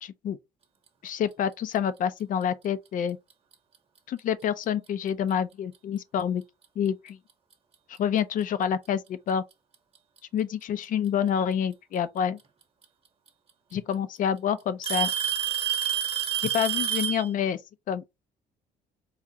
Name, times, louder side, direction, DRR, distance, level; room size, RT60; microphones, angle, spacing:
voice 1, 0.0-0.4 1.0-3.2 4.1-6.4 6.8-7.2 8.0-9.4 10.3-12.4 13.7-15.1 16.4-17.6 17.9-18.0, left 8 dB, 50° left, 0.5 m, -27 dB
Alarm / Tick-tock, 3.3-3.5 4.4-4.5 5.3-5.4 7.1-7.2 8.4-8.5 9.7-10.2 11.9-12.0 13.3-13.4 13.7-14.2 14.8-17.3, right 9 dB, 35° right, 0.9 m, -28 dB
4.7 x 2.4 x 2.7 m
cardioid pair, 110°, 17 cm